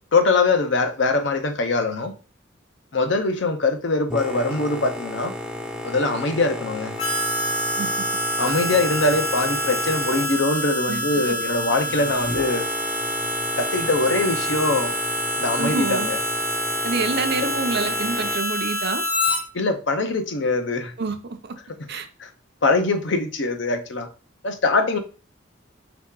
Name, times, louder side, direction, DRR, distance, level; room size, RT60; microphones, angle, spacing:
voice 1, 0.1-2.1 2.9-5.3 5.8-6.9 8.4-12.7 13.6-14.9 15.4-16.2 17.4-17.5 19.5-20.9 22.2-22.3 22.6-24.1 24.4-25.0, left 3 dB, 65° left, 0.6 m, -22 dB
Boat Water vehicle, 4.1-18.4, left 1 dB, 5° right, 0.5 m, -34 dB
Harmonica, 7.0-19.4, equal, 25° left, 0.8 m, -26 dB
voice 2, 15.6-16.1 16.8-19.0 21.0-21.5 21.9-22.1, right 4 dB, 55° right, 0.6 m, -27 dB
4.5 x 2.9 x 3.7 m
head